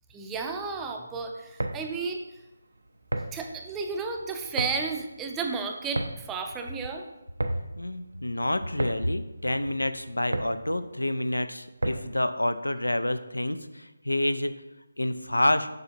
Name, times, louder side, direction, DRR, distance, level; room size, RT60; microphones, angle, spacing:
voice 1, 0.1-2.2 3.3-7.1, right 4 dB, 10° right, 3 dB, 0.5 m, -33 dB
sound 1, 1.4-12.3, right 1 dB, 80° right, 0.6 m, -36 dB
voice 2, 7.8-14.5 15.0-15.7, left 1 dB, 90° left, 11 dB, 0.5 m, -28 dB
7.7 x 5.4 x 2.9 m, 0.99 s
figure-of-eight pair, 155°, 0 cm